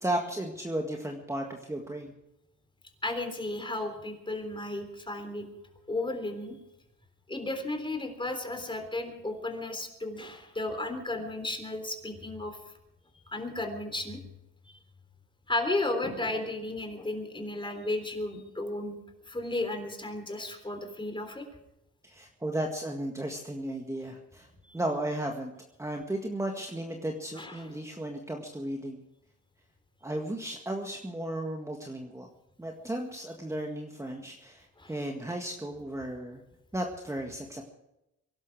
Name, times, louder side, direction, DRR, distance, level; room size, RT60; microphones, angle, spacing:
voice 1, 0.0-2.1 22.0-24.5 24.7-25.5 25.8-29.0 30.0-32.3 32.6-36.4 36.7-37.6, right 1 dB, 10° right, 2 dB, 1.8 m, -34 dB
voice 2, 3.0-5.5 5.9-6.6 7.3-12.6 13.1-14.2 15.5-19.0 19.3-21.5 24.7-24.8 27.4-27.7 34.8-34.9, left 2 dB, 15° left, 6 dB, 3.5 m, -34 dB
23.5 x 12.0 x 4.8 m, 0.89 s
cardioid pair, 90°, 30 cm